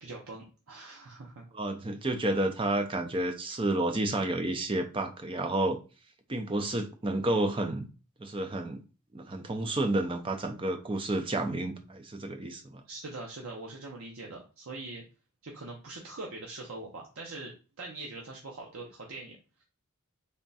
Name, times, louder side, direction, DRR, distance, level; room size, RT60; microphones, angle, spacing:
voice 1, 0.0-1.4 12.9-15.0 15.4-19.6, right 2 dB, 70° right, 0.7 m, -43 dB
voice 2, 1.5-5.8 6.3-7.9 8.2-8.8 9.1-12.8, right 1 dB, 25° right, 0.5 m, -30 dB
3.5 x 2.2 x 4.0 m
head